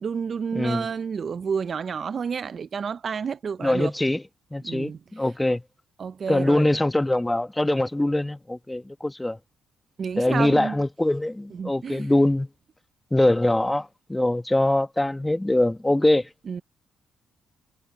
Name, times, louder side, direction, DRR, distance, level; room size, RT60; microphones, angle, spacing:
voice 1, 0.0-3.9 4.6-5.0 6.0-6.7 10.0-10.8 11.5-12.1 16.5-16.6, right 6 dB, 45° right, 0.4 m, -30 dB
voice 2, 0.5-0.9 3.6-4.2 4.5-5.6 6.3-9.4 10.2-12.5 13.1-16.3, left 1 dB, 10° left, 1.2 m, -23 dB
cardioid pair, 90°, 0 cm